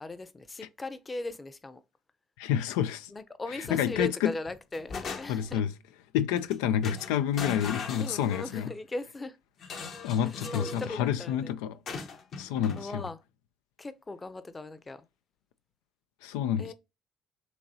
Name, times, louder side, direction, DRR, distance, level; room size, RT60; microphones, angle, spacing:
voice 1, 0.0-1.8 3.1-5.6 8.0-9.4 10.2-11.5 12.8-13.2 13.8-15.1 16.6-16.7, left 2 dB, 25° left, 0.7 m, -38 dB
voice 2, 2.4-3.1 3.6-4.3 5.3-5.7 6.1-8.7 10.0-11.7 12.4-13.0 16.2-16.7, left 9 dB, 85° left, 0.3 m, -29 dB
sound 1, 3.7-4.1 4.5-5.6 6.4-6.5 6.8-8.7 9.6-10.9 11.9-12.8, left 4 dB, 60° left, 1.2 m, -39 dB
6.3 x 3.0 x 2.8 m
supercardioid pair, 65°, 0 cm